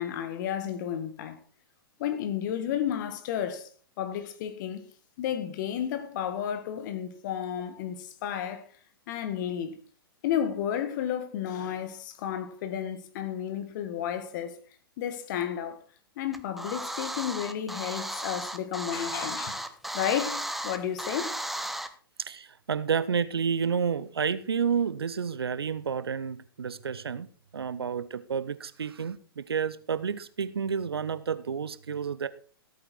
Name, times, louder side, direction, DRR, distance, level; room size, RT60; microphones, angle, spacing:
voice 1, 0.0-1.4 2.0-3.7 4.0-4.8 5.2-8.6 9.1-9.8 10.2-14.6 15.0-15.8 16.2-19.7 19.9-21.3, left 9 dB, 50° left, 2.0 m, -32 dB
sound 1, 16.3-21.9, right 1 dB, ahead, 0.9 m, -35 dB
voice 2, 22.2-27.3 27.5-32.3, right 6 dB, 80° right, 0.8 m, -30 dB
14.5 x 8.8 x 4.6 m
figure-of-eight pair, 110°, 13 cm